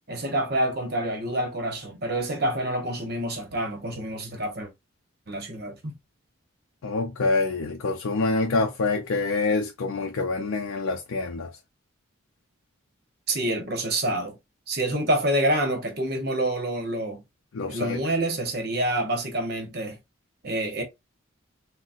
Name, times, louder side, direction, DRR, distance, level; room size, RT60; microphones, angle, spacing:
voice 1, 0.1-4.7 5.3-6.0 13.3-14.4 14.7-17.2 17.7-20.0 20.4-20.8, right 1 dB, 50° right, 0.9 m, -27 dB
voice 2, 6.8-11.5 17.5-18.0, left 3 dB, 80° left, 0.4 m, -26 dB
3.9 x 2.1 x 2.4 m
head